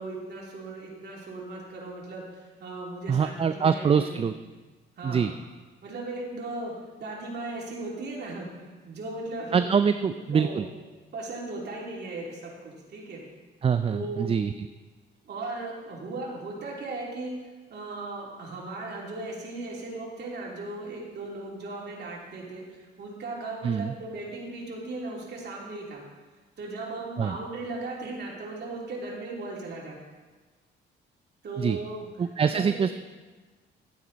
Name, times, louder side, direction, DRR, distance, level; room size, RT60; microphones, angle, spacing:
voice 1, 0.0-4.2 5.0-5.3 5.8-8.5 8.8-9.6 10.0-10.1 10.3-10.6 11.1-13.2 13.9-14.4 15.2-17.3 17.7-26.0 26.6-30.0 31.4-32.1 32.4-32.8, right 2 dB, 55° right, -3 dB, 3.0 m, -37 dB
voice 2, 3.1-4.3 5.0-5.3 9.5-10.7 13.6-14.5 23.6-23.9 27.2-27.3 31.6-31.8 32.2-32.9, right 6 dB, 30° right, 10 dB, 0.4 m, -24 dB
11.5 x 9.4 x 4.1 m, 1.3 s
cardioid pair, 90°, 20 cm